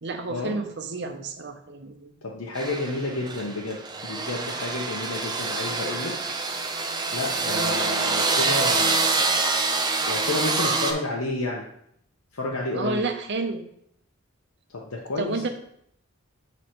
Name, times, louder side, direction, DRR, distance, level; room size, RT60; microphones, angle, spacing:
voice 1, 0.0-2.1 7.5-7.8 12.7-13.6 15.2-15.5, right 3 dB, 55° right, 6 dB, 0.7 m, -30 dB
voice 2, 2.2-6.2 7.1-9.1 10.1-11.6 12.3-13.1 14.7-15.5, left 2 dB, 80° left, -2 dB, 0.9 m, -31 dB
sound 1, 2.6-10.9, right 3 dB, 20° right, 0.5 m, -26 dB
7.8 x 3.1 x 4.3 m, 0.72 s
head